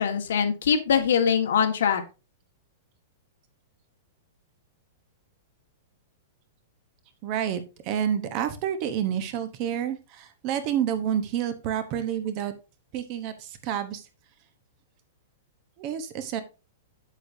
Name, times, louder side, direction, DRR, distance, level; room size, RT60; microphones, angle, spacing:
voice 1, 0.0-2.0, left 7 dB, 70° left, 6 dB, 1.6 m, -23 dB
voice 2, 7.2-12.5 12.9-14.1 15.8-16.4, right 9 dB, 25° right, 10 dB, 0.9 m, -29 dB
8.4 x 8.1 x 2.7 m, 0.29 s
supercardioid pair, 180°, 0 cm